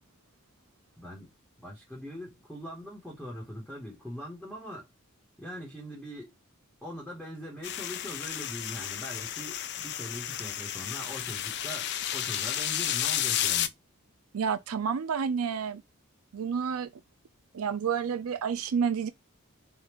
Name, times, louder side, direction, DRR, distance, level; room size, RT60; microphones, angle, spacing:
voice 1, 1.0-4.9 5.4-6.3 6.8-13.7, equal, ahead, 1.1 m, -42 dB
sound 1, 7.6-13.7, left 11 dB, 50° left, 0.4 m, -32 dB
voice 2, 14.3-15.8 16.3-16.9 17.5-19.1, right 6 dB, 85° right, 0.4 m, -29 dB
3.5 x 2.4 x 3.0 m
head